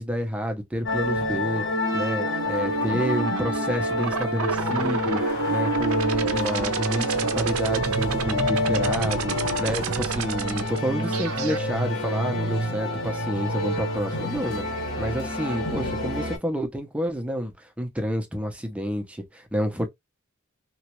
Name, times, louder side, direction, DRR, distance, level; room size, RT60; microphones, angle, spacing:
voice 1, 0.0-1.6 1.9-5.2 5.5-19.9, equal, 5° right, 0.6 m, -29 dB
sound 1, 0.8-16.4, left 1 dB, 60° left, 1.9 m, -28 dB
sound 2, 2.2-11.6, right 6 dB, 85° right, 0.5 m, -30 dB
3.0 x 2.3 x 2.9 m
head